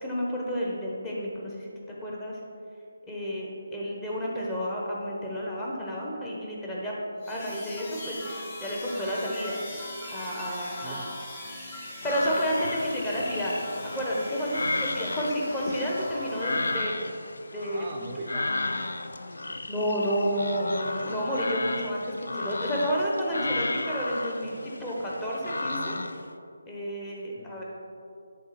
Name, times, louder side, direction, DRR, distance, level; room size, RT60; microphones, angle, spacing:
voice 1, 0.0-2.4 3.1-6.9 7.3-8.2 8.6-9.6 10.1-11.0 12.0-13.6 13.9-16.9 17.5-17.8 18.3-18.4 19.7-26.0 26.7-27.6, equal, 15° left, -4 dB, 1.2 m, -30 dB
sound 1, 7.2-16.8, left 1 dB, 30° left, 1.8 m, -41 dB
voice 2, 10.8-11.1 17.7-18.5 27.4-27.6, right 3 dB, 20° right, -2 dB, 0.6 m, -42 dB
sound 2, 12.0-26.3, left 2 dB, 70° left, 0.4 m, -34 dB
10.5 x 3.7 x 4.3 m, 2.5 s
figure-of-eight pair, 150°, 0 cm